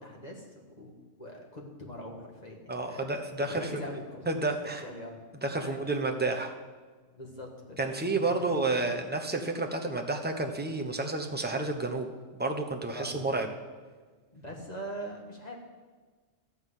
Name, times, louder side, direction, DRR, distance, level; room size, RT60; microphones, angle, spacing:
voice 1, 0.0-3.1 3.5-4.2 4.7-5.2 5.6-5.8 7.1-8.9 12.9-13.2 14.3-15.6, equal, 30° left, 0 dB, 1.9 m, -43 dB
voice 2, 2.7-3.7 4.3-4.8 5.4-6.5 7.8-12.1 12.3-13.5, right 3 dB, 10° right, 3 dB, 0.7 m, -30 dB
12.5 x 5.8 x 8.2 m, 1.4 s
omnidirectional pair, 1.4 m